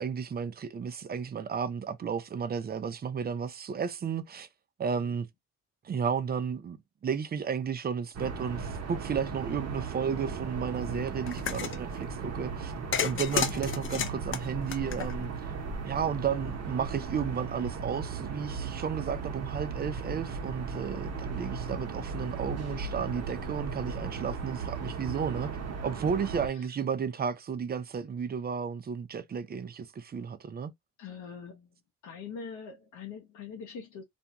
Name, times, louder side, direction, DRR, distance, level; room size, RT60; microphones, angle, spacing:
voice 1, 0.0-4.5 4.8-5.3 5.8-6.8 7.0-12.7 13.0-15.3 15.8-25.5 25.8-30.7, right 7 dB, 30° right, 0.5 m, -33 dB
sound 1, 8.1-26.5, right 5 dB, 55° right, 0.9 m, -36 dB
sound 2, 11.3-11.8 12.9-15.4, left 8 dB, 45° left, 0.5 m, -31 dB
voice 2, 13.0-13.4 21.1-21.5 26.4-26.7 31.0-31.8 32.0-34.0, left 6 dB, 75° left, 0.8 m, -44 dB
2.6 x 2.2 x 2.8 m
cardioid pair, 90°, 30 cm